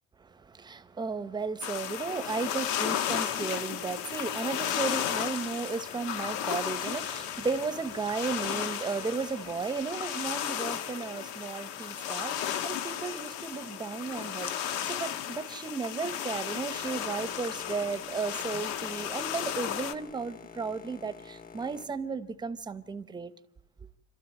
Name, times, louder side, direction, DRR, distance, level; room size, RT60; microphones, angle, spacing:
voice 1, 0.2-23.3, right 4 dB, 15° right, 0.7 m, -34 dB
sound 1, 1.6-19.9, left 10 dB, 90° left, 1.4 m, -34 dB
Boat Water vehicle, 16.7-23.1, left 5 dB, 30° left, 0.8 m, -49 dB
27.0 x 13.0 x 9.0 m
cardioid pair, 165°, 29 cm